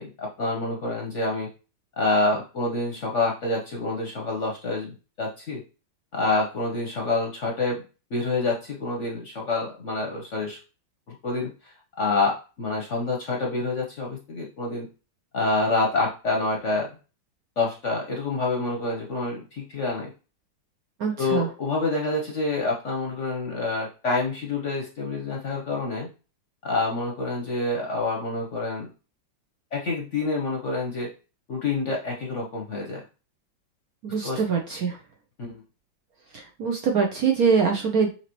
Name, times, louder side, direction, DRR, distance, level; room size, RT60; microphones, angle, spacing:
voice 1, 0.0-1.5 2.0-5.6 6.1-7.8 8.1-10.6 11.1-14.9 15.3-16.9 17.6-20.1 21.2-26.1 26.6-28.9 29.7-31.1 31.5-33.0 34.2-34.4 35.4-35.6, left 3 dB, 50° left, 0 dB, 0.9 m, -27 dB
voice 2, 21.0-21.5 34.0-35.0 36.3-38.1, right 6 dB, 65° right, 2 dB, 0.9 m, -23 dB
5.8 x 2.8 x 3.0 m, 0.33 s
omnidirectional pair, 2.1 m